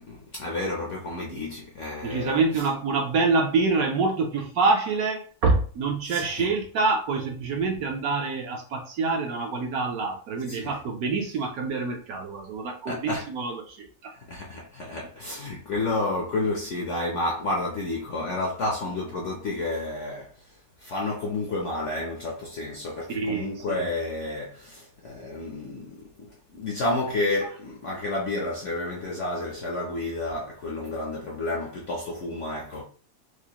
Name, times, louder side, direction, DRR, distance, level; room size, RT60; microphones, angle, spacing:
voice 1, 0.0-2.4 6.1-6.5 10.5-10.7 12.9-13.3 14.1-20.5 20.8-32.8, left 2 dB, 65° left, 0.7 m, -31 dB
voice 2, 2.0-14.1 23.1-23.9, right 3 dB, 65° right, 0.9 m, -26 dB
4.7 x 2.1 x 2.8 m
omnidirectional pair, 1.9 m